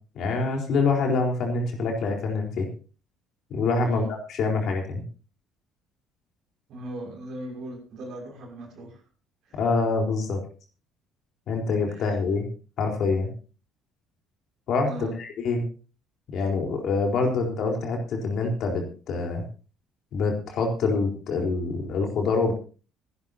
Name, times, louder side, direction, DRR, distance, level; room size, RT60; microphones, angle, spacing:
voice 1, 0.2-2.7 3.5-5.0 9.6-10.4 11.5-12.5 12.8-13.3 14.7-15.6 16.3-19.4 20.1-22.5, left 4 dB, 50° left, 2 dB, 4.2 m, -25 dB
voice 2, 6.7-9.0 9.5-9.6 11.9-12.1 14.9-15.1, right 1 dB, 55° right, 1 dB, 6.2 m, -39 dB
24.0 x 11.5 x 2.9 m, 0.37 s
figure-of-eight pair, 50°, 0 cm